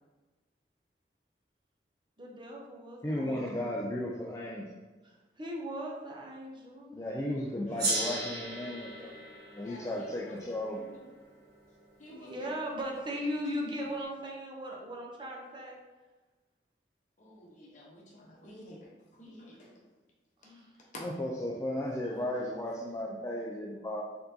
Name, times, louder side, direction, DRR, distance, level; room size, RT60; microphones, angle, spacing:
voice 1, 2.2-3.7 5.0-7.0 12.1-15.8 20.4-20.7, equal, 25° right, -1 dB, 0.6 m, -38 dB
voice 2, 3.0-4.7 6.9-9.1 9.5-10.9 21.0-24.0, left 1 dB, 15° left, -2 dB, 0.3 m, -35 dB
voice 3, 7.8-8.2 9.7-10.4 10.7-11.0 12.0-12.3 17.2-19.7 20.9-21.0, left 1 dB, 45° left, -3 dB, 1.0 m, -50 dB
Gong, 7.8-12.5, right 2 dB, 65° right, 1.2 m, -37 dB
4.4 x 3.8 x 2.7 m, 1.2 s
head